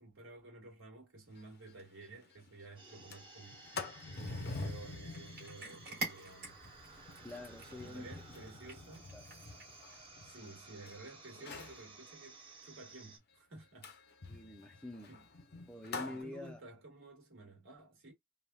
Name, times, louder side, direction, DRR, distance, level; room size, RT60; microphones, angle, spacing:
voice 1, 0.0-3.7 4.2-6.6 7.8-9.1 10.2-14.0 15.1-15.3 16.0-18.1, right 2 dB, 65° right, 1.7 m, -53 dB
Sliding door, 1.4-1.5 1.8-1.9 2.2-2.5 2.9-10.9 11.3-11.8 13.8-16.2, left 3 dB, 50° left, 0.6 m, -46 dB
sound 1, 2.8-13.2, right 3 dB, 25° right, 0.9 m, -56 dB
Cat, 4.7-9.9, right 2 dB, 50° right, 1.6 m, -47 dB
voice 2, 7.2-8.1 9.1-9.2 14.3-15.1 15.7-16.6, left 2 dB, 5° left, 0.4 m, -46 dB
3.2 x 2.2 x 2.2 m
head